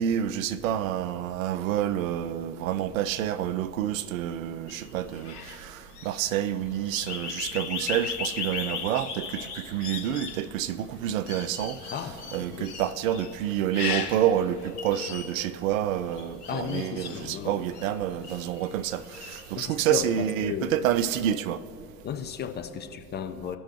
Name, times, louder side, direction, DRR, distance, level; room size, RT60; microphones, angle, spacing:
voice 1, 0.0-11.8 12.3-21.6, right 10 dB, 60° right, 0.5 m, -28 dB
sound 1, 4.7-18.8 19.1-19.8, left 7 dB, 75° left, 1.0 m, -38 dB
voice 2, 16.5-17.6 19.5-20.7 22.0-23.6, left 8 dB, 25° left, 0.5 m, -34 dB
18.0 x 6.1 x 2.9 m
figure-of-eight pair, 65°, 46 cm